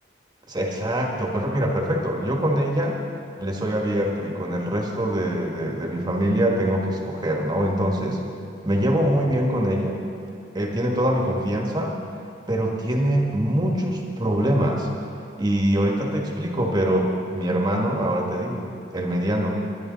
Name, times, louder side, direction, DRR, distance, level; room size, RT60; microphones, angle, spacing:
voice 1, 0.5-3.0 3.4-8.2 8.6-10.0 10.5-12.0 12.5-14.9 15.4-19.6, right 1 dB, 20° right, 0 dB, 1.5 m, -24 dB
20.5 x 10.5 x 4.0 m, 2.5 s
head